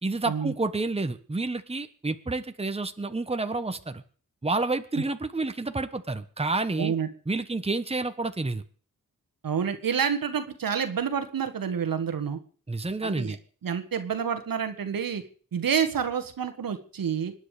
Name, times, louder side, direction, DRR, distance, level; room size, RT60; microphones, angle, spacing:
voice 1, 0.0-4.0 4.4-6.9 7.3-8.6 12.7-13.4, right 3 dB, 20° right, 9 dB, 1.2 m, -29 dB
voice 2, 6.8-7.1 9.4-12.4 13.0-13.4 13.6-15.2 15.5-17.3, right 7 dB, 85° right, 8 dB, 1.7 m, -28 dB
25.0 x 9.7 x 5.0 m, 0.43 s
wide cardioid pair, 75°, 33 cm